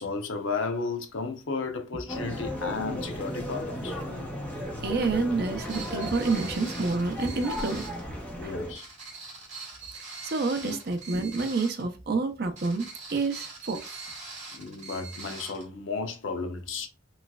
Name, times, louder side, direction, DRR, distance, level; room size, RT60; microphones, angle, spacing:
voice 1, 0.0-4.0 8.4-8.9 10.6-10.8 14.5-16.9, left 4 dB, 75° left, 0.6 m, -33 dB
sound 1, 2.1-8.7, left 1 dB, 5° left, 0.7 m, -35 dB
voice 2, 4.8-7.8 8.4-8.5 10.2-13.9, right 3 dB, 50° right, 0.5 m, -28 dB
sound 2, 5.6-8.1 8.7-11.9 12.6-15.6, right 3 dB, 35° right, 1.1 m, -42 dB
3.1 x 3.0 x 2.3 m
head